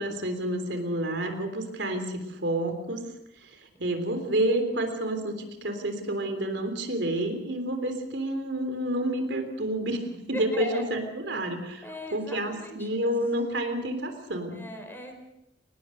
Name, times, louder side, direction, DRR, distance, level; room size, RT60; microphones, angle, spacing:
voice 1, 0.0-3.0 3.4-14.6, right 1 dB, 70° right, 6 dB, 3.4 m, -29 dB
voice 2, 10.3-10.8 11.8-12.9 14.5-15.1, equal, 10° left, 5 dB, 4.1 m, -38 dB
23.5 x 19.5 x 6.5 m, 0.85 s
head